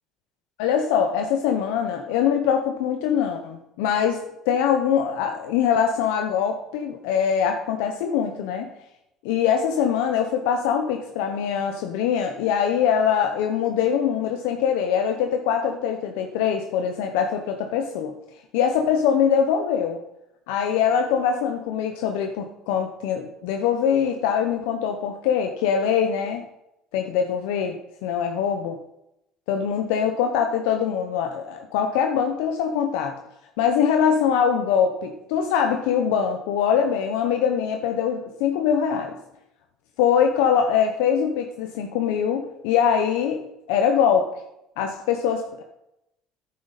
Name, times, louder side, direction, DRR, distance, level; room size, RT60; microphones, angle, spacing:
voice 1, 0.6-8.7 9.2-18.1 18.5-20.0 20.5-26.4 26.9-28.8 29.5-33.1 33.6-39.1 40.0-44.3 44.8-45.6, left 7 dB, 85° left, 5 dB, 0.8 m, -23 dB
9.7 x 8.5 x 4.1 m, 0.84 s
supercardioid pair, 95°, 0 cm